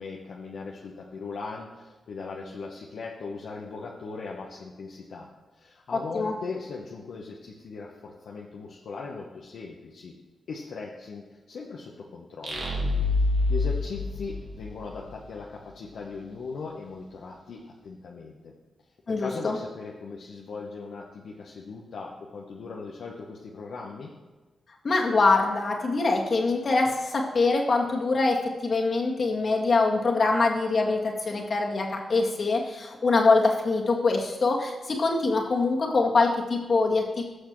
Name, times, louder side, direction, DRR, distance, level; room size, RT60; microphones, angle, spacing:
voice 1, 0.0-5.3 5.5-10.1 10.5-12.7 13.0-18.5 19.1-24.1, left 4 dB, 75° left, -2 dB, 1.0 m, -39 dB
sound 1, 12.4-15.1, left 2 dB, 70° right, 1.9 m, -26 dB
voice 2, 19.1-19.6 24.8-37.2, left 3 dB, 55° left, 0 dB, 2.0 m, -24 dB
17.5 x 6.5 x 3.2 m, 1.3 s
supercardioid pair, 50°, 0 cm